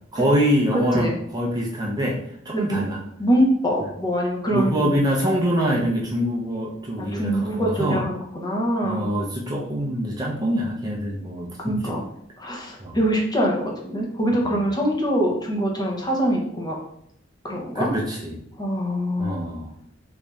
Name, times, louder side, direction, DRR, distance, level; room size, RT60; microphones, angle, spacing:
voice 1, 0.1-2.2 2.5-3.0 4.5-8.0 8.8-11.9 12.8-13.0 14.4-14.7 17.7-18.5 19.2-19.8, equal, 20° right, -2 dB, 0.5 m, -25 dB
voice 2, 0.7-1.1 2.5-2.8 3.2-5.0 7.0-9.1 11.6-12.0 12.4-16.8 17.4-17.9 18.6-19.3, equal, 20° left, -1 dB, 0.7 m, -24 dB
3.2 x 2.6 x 3.4 m, 0.71 s
head